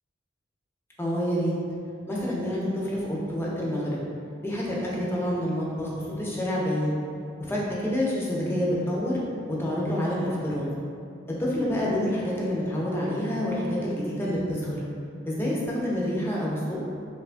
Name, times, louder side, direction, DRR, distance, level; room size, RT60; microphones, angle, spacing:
voice 1, 1.0-1.5 2.1-4.0 4.4-7.0 7.5-9.2 9.6-10.6 11.4-14.8 15.3-16.8, equal, 10° left, -5 dB, 0.4 m, -27 dB
3.0 x 2.2 x 2.4 m, 2.4 s
head